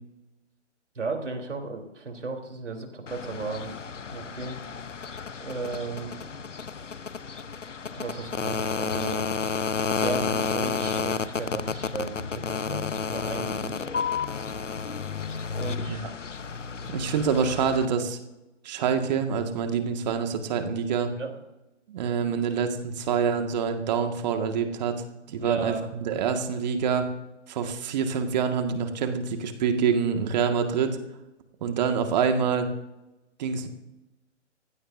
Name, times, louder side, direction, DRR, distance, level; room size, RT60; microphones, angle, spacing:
voice 1, 1.0-3.8 4.1-4.6 5.4-6.2 7.9-9.3 10.0-13.9 15.5-16.0 21.2-21.3 25.3-25.9, right 4 dB, 75° right, 3 dB, 3.7 m, -35 dB
sound 1, 3.1-17.8, left 5 dB, 85° left, 1.0 m, -31 dB
voice 2, 16.9-18.2 18.6-21.1 21.9-25.0 25.3-25.7 26.0-27.1 27.5-31.0 31.6-32.7 33.4-33.7, right 6 dB, 35° right, 6 dB, 1.9 m, -26 dB
24.0 x 16.0 x 2.7 m, 0.98 s
figure-of-eight pair, 140°, 36 cm